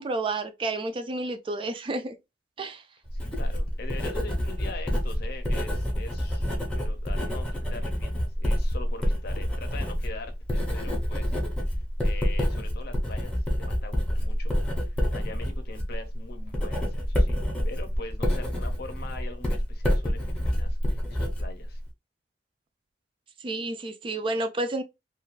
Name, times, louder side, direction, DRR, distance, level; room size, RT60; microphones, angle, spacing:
voice 1, 0.0-2.2 2.6-2.8 23.4-24.8, right 2 dB, 30° right, 0.3 m, -30 dB
voice 2, 3.1-11.3 12.0-14.5 14.9-21.8, left 3 dB, 60° left, 0.6 m, -43 dB
Writing, 3.1-21.9, equal, 5° left, 0.7 m, -28 dB
2.5 x 2.3 x 3.1 m
head